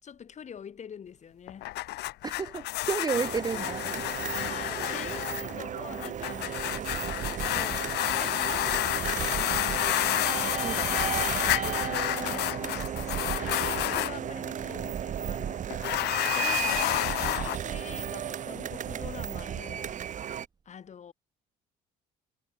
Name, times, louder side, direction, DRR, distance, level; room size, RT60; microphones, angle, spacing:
voice 1, 0.0-1.8 4.4-6.8 7.4-15.6 16.4-20.0 20.7-21.1, left 8 dB, 45° left, 5.4 m, -45 dB
sound 1, 1.5-14.2 15.7-17.6, left 17 dB, 75° left, 0.8 m, -30 dB
voice 2, 2.2-4.1 10.4-11.2, right 5 dB, 25° right, 0.6 m, -32 dB
sound 2, 3.1-20.5, right 9 dB, 50° right, 1.7 m, -34 dB
cardioid pair, 110°, 17 cm